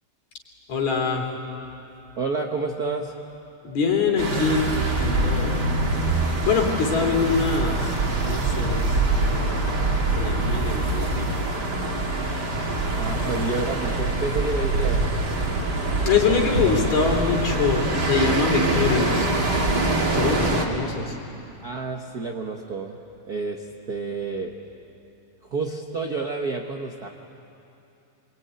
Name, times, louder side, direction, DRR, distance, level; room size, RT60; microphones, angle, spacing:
voice 1, 0.7-1.3 3.6-5.5 6.2-7.9 8.2-9.8 10.1-11.3 16.0-19.3 20.1-21.2, left 5 dB, 55° left, 2 dB, 4.2 m, -24 dB
voice 2, 2.2-3.1 13.0-15.1 21.6-23.0 23.3-24.5 25.5-27.1, right 3 dB, 85° right, 2 dB, 0.8 m, -29 dB
sound 1, 4.2-20.7, right 2 dB, 35° right, 2.6 m, -24 dB
26.0 x 24.0 x 9.6 m, 2.8 s
omnidirectional pair, 3.8 m